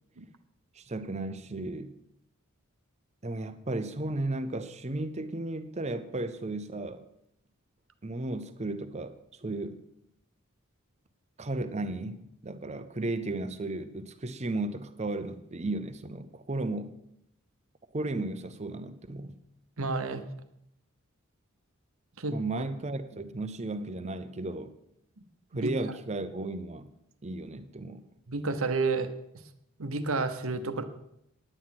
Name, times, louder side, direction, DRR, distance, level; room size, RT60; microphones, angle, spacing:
voice 1, 0.8-1.9 3.2-7.0 8.0-9.8 11.4-16.9 17.9-19.3 22.3-24.7 25.5-26.9 27.2-28.0, right 2 dB, 30° right, 0.7 m, -34 dB
voice 2, 19.8-20.2 22.2-22.4 25.5-25.7 28.3-29.1 29.8-30.8, right 3 dB, 70° right, 0.9 m, -30 dB
10.0 x 9.5 x 5.9 m
head